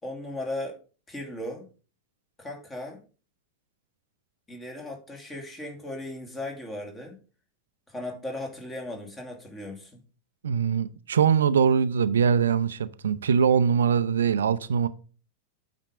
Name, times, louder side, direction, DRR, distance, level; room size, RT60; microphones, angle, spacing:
voice 1, 0.0-1.7 2.4-3.0 4.5-7.2 7.9-10.0, left 1 dB, 15° left, 2.4 m, -37 dB
voice 2, 10.4-14.9, right 7 dB, 65° right, 0.6 m, -22 dB
8.9 x 5.3 x 5.5 m
figure-of-eight pair, 90°, 0 cm